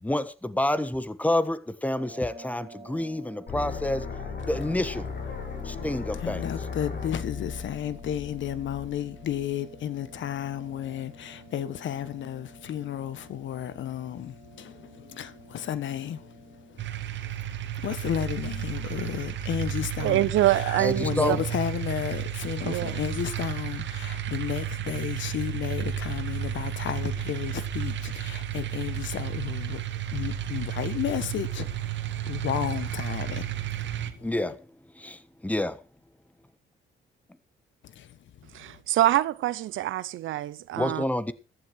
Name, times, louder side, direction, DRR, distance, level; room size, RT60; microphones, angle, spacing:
voice 1, 0.0-4.1 4.5-5.1 5.6-6.4 20.8-21.4 34.2-34.6 34.9-35.8 40.8-41.3, left 1 dB, 5° left, 1.3 m, -28 dB
sound 1, 1.9-17.0, right 2 dB, 25° right, 5.4 m, -50 dB
sound 2, 3.5-9.4, left 5 dB, 55° left, 4.8 m, -36 dB
voice 2, 6.1-34.3 37.8-38.8, left 10 dB, 70° left, 1.5 m, -33 dB
sound 3, 16.8-34.1, right 10 dB, 65° right, 2.0 m, -32 dB
voice 3, 20.0-21.4 22.6-23.0 38.5-41.0, right 14 dB, 80° right, 0.9 m, -25 dB
14.5 x 11.5 x 4.6 m
cardioid pair, 90°, 20 cm